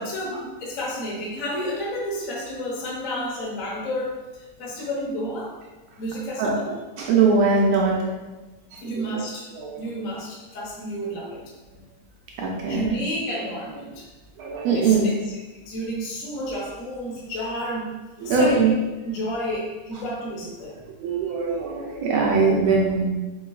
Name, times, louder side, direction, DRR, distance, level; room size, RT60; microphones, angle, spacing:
voice 1, 0.0-5.5 6.0-6.7 8.8-9.5 9.8-11.4 12.6-14.1 14.4-15.2 15.6-17.9 18.2-18.7 19.0-20.7, equal, 90° left, -5 dB, 0.7 m, -31 dB
voice 2, 7.0-8.0 8.7-8.8 9.5-9.9 12.4-12.9 14.4-15.1 18.2-18.7 21.0-23.0, right 4 dB, 80° right, -3 dB, 1.7 m, -21 dB
5.2 x 3.8 x 2.3 m, 1.2 s
omnidirectional pair, 3.4 m